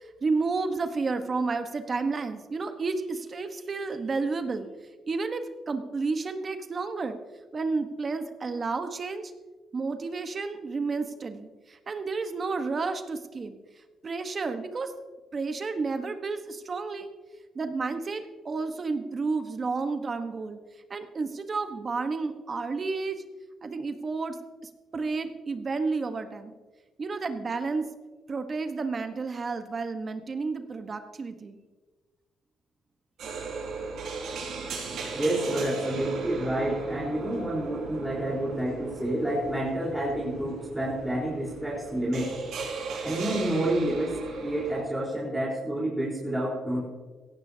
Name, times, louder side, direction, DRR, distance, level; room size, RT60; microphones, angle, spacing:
voice 1, 0.0-4.7 5.1-7.2 7.5-9.3 9.7-13.6 14.0-14.9 15.3-17.1 17.5-20.6 20.9-23.2 23.6-24.4 24.9-26.5 27.0-27.9 28.3-31.6, right 4 dB, 40° right, 8 dB, 1.2 m, -31 dB
sound 1, 33.2-44.8, right 4 dB, 75° right, 4.4 m, -37 dB
voice 2, 35.1-42.3 43.0-46.9, right 1 dB, 10° right, -6 dB, 4.1 m, -29 dB
16.5 x 15.0 x 2.8 m, 1.3 s
cardioid pair, 85°, 0 cm